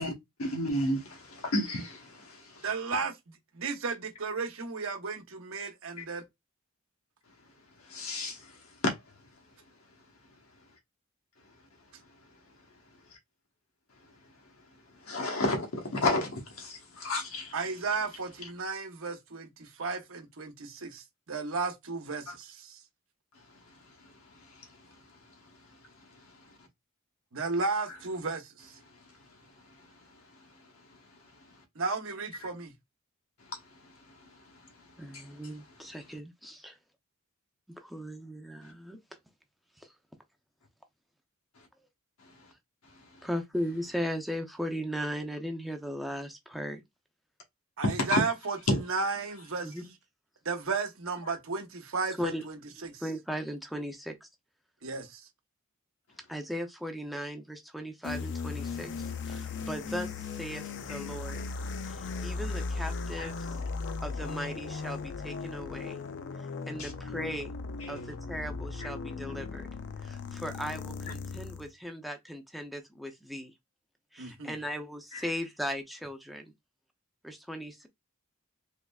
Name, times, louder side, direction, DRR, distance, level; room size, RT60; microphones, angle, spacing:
voice 1, 0.4-2.7 6.0-6.1 7.9-8.5 8.8-9.0 15.0-17.5 22.3-22.4 24.5-24.6 35.1-35.2 47.8-48.2 48.7-48.8 63.2-63.3 66.8-66.9 67.8-67.9 68.8-68.9 75.1-75.2, left 1 dB, 80° left, 1.1 m, -31 dB
voice 2, 2.6-3.1 3.5-6.2 17.5-22.8 27.3-28.4 28.7-28.8 31.8-32.7 47.8-48.6 48.9-49.7 50.4-52.5 52.8-53.0 54.8-55.2 74.2-74.5, right 4 dB, 65° right, 0.9 m, -34 dB
voice 3, 35.0-36.8 37.8-39.0 39.8-39.9 43.2-46.8 49.6-49.8 52.2-52.4 52.8-54.3 56.3-61.4 62.2-63.6 64.0-66.0 66.3-67.6 67.9-69.7 70.0-73.5 74.1-76.5 77.2-77.9, equal, ahead, 0.5 m, -37 dB
sound 1, 58.0-71.7, left 4 dB, 55° left, 0.4 m, -37 dB
3.5 x 3.2 x 2.3 m
head